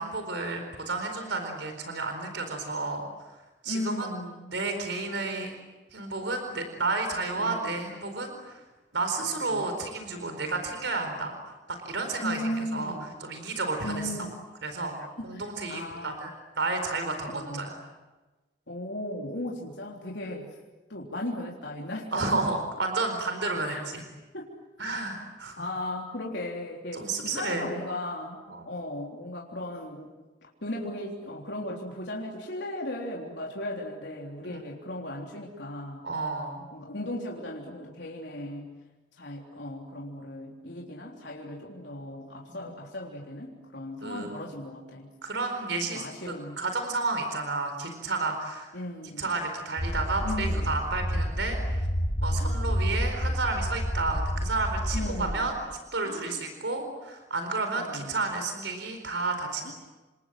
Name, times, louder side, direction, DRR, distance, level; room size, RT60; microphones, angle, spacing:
voice 1, 0.0-3.0 3.6-4.1 4.5-5.5 5.9-8.6 8.9-12.9 13.2-14.1 14.6-15.0 15.2-16.3 16.6-17.8 22.1-24.0 24.8-25.6 26.9-27.7 28.5-28.7 34.4-34.6 36.0-36.6 42.5-42.7 44.0-44.4 45.2-48.7 49.2-51.9 52.2-55.5 55.9-59.7, right 3 dB, 80° right, 6 dB, 4.5 m, -31 dB
voice 2, 3.7-4.5 7.4-7.8 9.2-9.7 12.2-13.1 13.8-14.4 15.2-16.3 17.3-17.7 18.7-20.5 20.9-22.4 23.6-23.9 24.3-24.5 25.6-30.1 30.4-36.0 36.7-38.7 39.2-45.1 45.9-46.6 48.7-49.3 50.2-50.7 52.4-52.6 53.2-53.4 54.9-55.5 56.0-56.4 57.8-58.2 59.6-59.7, left 1 dB, 70° left, -2 dB, 3.7 m, -37 dB
sound 1, 49.8-55.3, equal, 40° left, 4.9 m, -29 dB
29.5 x 26.5 x 7.7 m, 1.2 s
head